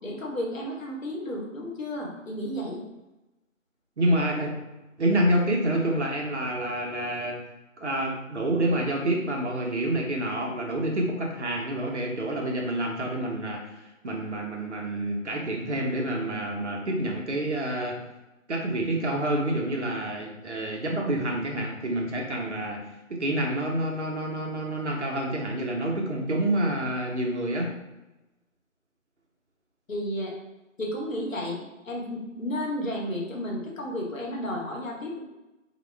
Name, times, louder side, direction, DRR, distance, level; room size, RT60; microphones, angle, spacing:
voice 1, 0.0-2.8 29.9-30.3 30.8-35.2, equal, 80° left, -2 dB, 1.0 m, -32 dB
voice 2, 4.0-4.6 5.0-7.4 7.8-13.7 14.0-18.0 18.5-22.8 23.1-27.7, right 1 dB, 60° right, -1 dB, 0.7 m, -28 dB
2.3 x 2.1 x 3.2 m, 1.0 s
figure-of-eight pair, 165°, 40 cm